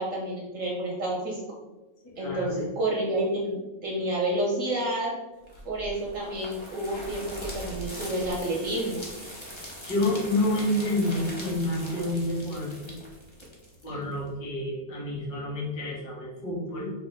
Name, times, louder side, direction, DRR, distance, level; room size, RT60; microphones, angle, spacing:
voice 1, 0.0-1.4 2.2-5.1 5.7-9.1 13.9-14.0, right 1 dB, 65° right, -2 dB, 0.8 m, -29 dB
voice 2, 2.0-2.7 9.9-12.9 13.8-16.9, left 1 dB, 60° left, -6 dB, 2.0 m, -29 dB
sound 1, 5.5-14.3, equal, 40° left, 0.4 m, -41 dB
4.7 x 3.0 x 3.3 m, 1.1 s
omnidirectional pair, 2.1 m